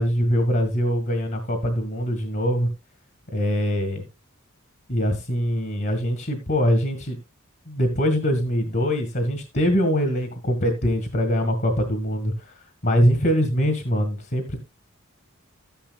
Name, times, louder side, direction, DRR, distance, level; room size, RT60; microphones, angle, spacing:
voice 1, 0.0-2.7 3.3-4.0 4.9-7.2 7.7-12.5 12.8-14.6, equal, 50° left, 6 dB, 1.8 m, -23 dB
13.0 x 10.0 x 2.3 m, 0.24 s
head